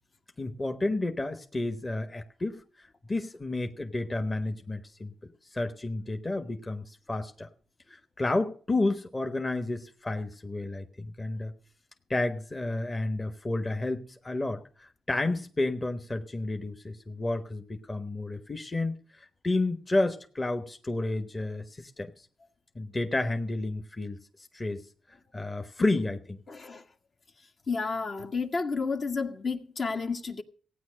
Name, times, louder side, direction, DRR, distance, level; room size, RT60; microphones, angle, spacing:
voice 1, 0.4-7.5 7.9-11.5 12.1-22.3 22.7-24.2 24.5-24.8 25.3-26.4, left 2 dB, 25° left, 1.3 m, -31 dB
voice 2, 26.5-26.8 27.7-30.4, left 4 dB, 50° left, 1.7 m, -31 dB
15.5 x 9.3 x 6.4 m
cardioid pair, 75°, 0 cm